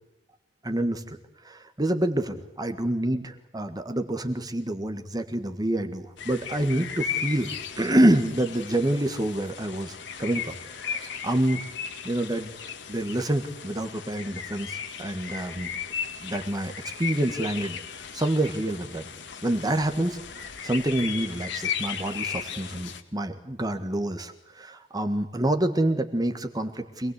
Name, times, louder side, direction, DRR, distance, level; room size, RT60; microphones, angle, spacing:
voice 1, 0.6-1.2 1.4-11.7 12.0-12.5 12.9-15.7 16.2-16.7 17.0-17.8 18.1-19.0 19.4-27.1, right 1 dB, 20° right, 7 dB, 1.6 m, -27 dB
sound 1, 6.2-23.0, left 7 dB, 65° left, 2.3 m, -36 dB
26.0 x 19.5 x 8.2 m, 0.88 s
head